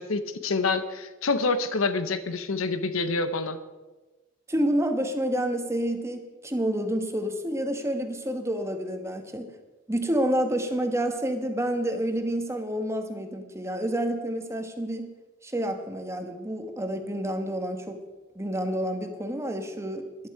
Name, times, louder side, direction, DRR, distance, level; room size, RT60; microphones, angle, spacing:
voice 1, 0.0-3.6, left 3 dB, 80° left, 11 dB, 0.9 m, -27 dB
voice 2, 4.5-9.5 9.9-15.1 15.4-18.0 18.3-20.3, right 1 dB, 15° right, 6 dB, 1.2 m, -29 dB
14.0 x 11.5 x 4.7 m, 1.2 s
head